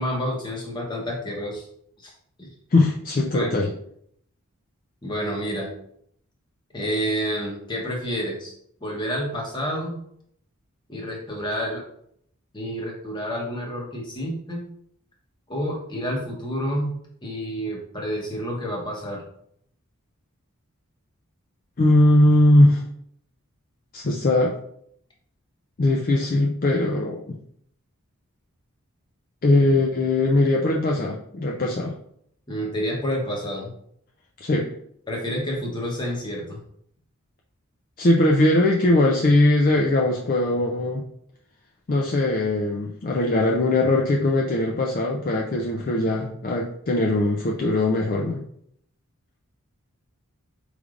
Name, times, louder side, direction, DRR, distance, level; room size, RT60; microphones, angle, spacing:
voice 1, 0.0-1.6 2.0-2.1 2.4-2.5 3.3-3.6 5.0-5.7 6.7-8.5 8.8-10.0 10.9-11.8 12.5-14.7 15.5-19.2 32.5-33.7 35.1-36.6, equal, 20° left, -2 dB, 0.9 m, -29 dB
voice 2, 2.7-3.7 21.8-22.8 23.9-24.5 25.8-27.4 29.4-31.9 34.4-34.7 38.0-41.0 41.9-48.4, left 1 dB, 40° left, -1 dB, 0.4 m, -20 dB
4.9 x 3.2 x 2.4 m, 0.69 s
head